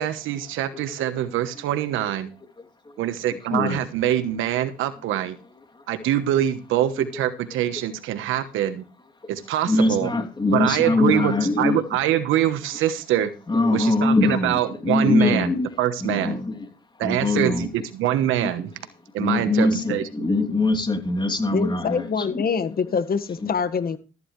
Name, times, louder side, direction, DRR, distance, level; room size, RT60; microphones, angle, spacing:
voice 1, 0.0-2.3 3.0-5.4 5.9-8.8 9.3-10.1 10.5-13.3 13.7-15.5 15.8-16.4 17.0-18.7 19.1-20.3, right 12 dB, 90° right, 1.2 m, -24 dB
voice 2, 3.5-3.8 7.1-7.3 9.7-11.8 13.5-15.7 16.0-16.5 17.0-17.7 19.2-22.3, left 2 dB, 25° left, 3.0 m, -22 dB
voice 3, 21.5-24.0, left 5 dB, 50° left, 1.7 m, -25 dB
13.5 x 11.0 x 3.3 m
cardioid pair, 90°, 20 cm